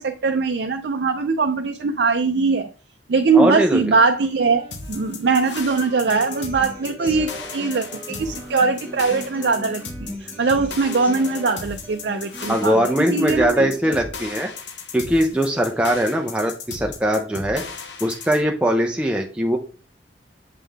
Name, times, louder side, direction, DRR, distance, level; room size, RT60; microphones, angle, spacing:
voice 1, 0.0-2.7 3.1-13.7, right 4 dB, 65° right, 5 dB, 0.5 m, -21 dB
voice 2, 3.3-3.8 12.5-14.5 14.9-17.6 18.0-19.6, equal, 5° right, 2 dB, 0.5 m, -21 dB
Wind instrument woodwind instrument, 3.9-10.7, right 2 dB, 25° right, 1.1 m, -44 dB
sound 1, 4.7-18.4, left 4 dB, 75° left, 0.9 m, -36 dB
Human voice / Acoustic guitar, 6.1-14.1, equal, 10° left, 1.2 m, -38 dB
7.4 x 3.7 x 3.4 m, 0.37 s
head